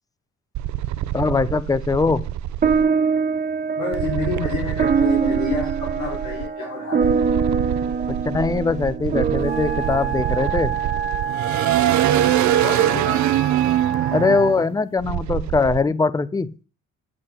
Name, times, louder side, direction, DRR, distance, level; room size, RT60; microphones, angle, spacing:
sound 1, 0.5-2.8 3.9-6.5 7.0-15.8, right 13 dB, 70° right, 0.6 m, -24 dB
voice 1, 1.1-2.2 8.1-10.7 14.1-16.5, left 4 dB, 10° left, 16 dB, 0.6 m, -21 dB
sound 2, 2.6-11.3, right 5 dB, 30° right, 0.9 m, -24 dB
voice 2, 3.8-7.1 12.6-13.3, left 4 dB, 65° left, -4 dB, 4.0 m, -29 dB
Wind instrument woodwind instrument, 9.4-14.7, right 7 dB, 50° right, 2.1 m, -28 dB
8.5 x 8.2 x 4.3 m, 0.35 s
cardioid pair, 90°, 30 cm